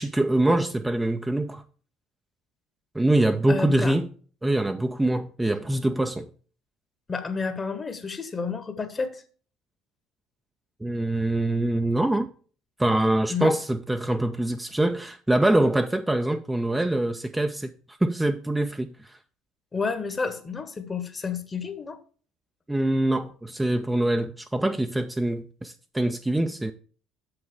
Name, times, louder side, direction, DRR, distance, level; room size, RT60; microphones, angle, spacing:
voice 1, 0.0-1.6 2.9-4.1 4.4-6.3 10.8-12.3 12.8-17.7 18.0-19.2 22.7-26.7, right 1 dB, 10° right, 0.5 m, -24 dB
voice 2, 3.5-4.0 7.1-9.2 13.3-13.5 19.7-22.0, left 5 dB, 25° left, 1.1 m, -30 dB
7.1 x 6.0 x 4.6 m
figure-of-eight pair, 55°, 0 cm